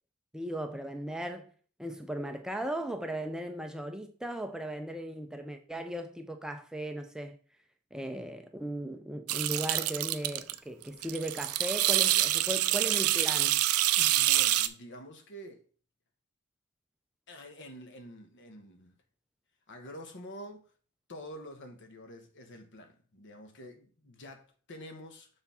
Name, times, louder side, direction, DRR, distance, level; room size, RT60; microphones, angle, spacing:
voice 1, 0.3-1.5 1.8-7.4 7.9-13.6, right 1 dB, 5° right, 0.5 m, -37 dB
sound 1, 9.3-10.5 10.8-14.7, right 14 dB, 80° right, 0.5 m, -26 dB
voice 2, 13.9-15.6 17.3-18.9 19.7-20.7 21.1-25.3, equal, 55° left, 1.2 m, -47 dB
6.8 x 3.5 x 5.6 m
head